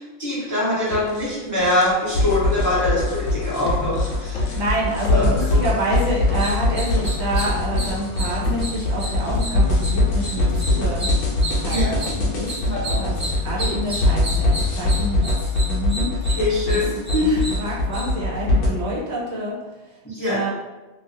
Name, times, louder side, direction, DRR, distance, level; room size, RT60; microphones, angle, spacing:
voice 1, 0.0-4.4 5.1-5.6 11.7-11.9 12.6-13.0 16.4-17.4 20.0-20.4, left 1 dB, 15° left, -10 dB, 0.7 m, -23 dB
sound 1, 0.9-15.2, left 2 dB, 80° left, 0.9 m, -33 dB
sound 2, 2.1-18.7, left 2 dB, 60° left, 0.7 m, -22 dB
voice 2, 4.5-11.1 11.6-12.5 13.0-15.4 15.7-16.4 16.7-16.8 17.2-19.6 20.3-20.5, right 1 dB, 65° right, -5 dB, 0.9 m, -27 dB
sound 3, 6.2-18.3, right 1 dB, 20° right, 0.7 m, -33 dB
2.6 x 2.4 x 2.7 m, 1.2 s
omnidirectional pair, 1.3 m